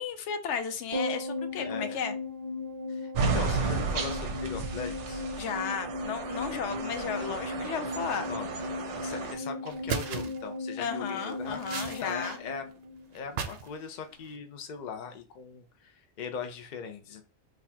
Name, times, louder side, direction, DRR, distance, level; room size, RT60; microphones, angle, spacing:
voice 1, 0.0-2.1 5.4-8.3 10.8-12.4, left 7 dB, 85° left, 0.9 m, -34 dB
sound 1, 0.9-13.4 13.7-13.8, left 2 dB, 30° left, 1.9 m, -37 dB
voice 2, 1.6-2.0 2.9-5.2 8.3-8.5 8.8-12.7 13.1-17.2, left 6 dB, 50° left, 0.6 m, -40 dB
sound 2, 3.1-9.3, right 4 dB, 90° right, 1.0 m, -33 dB
sound 3, 9.1-9.3 9.7-10.5 11.0-12.4 12.7-13.7 14.0-14.4, right 7 dB, 65° right, 0.7 m, -37 dB
4.0 x 2.4 x 2.8 m
omnidirectional pair, 1.2 m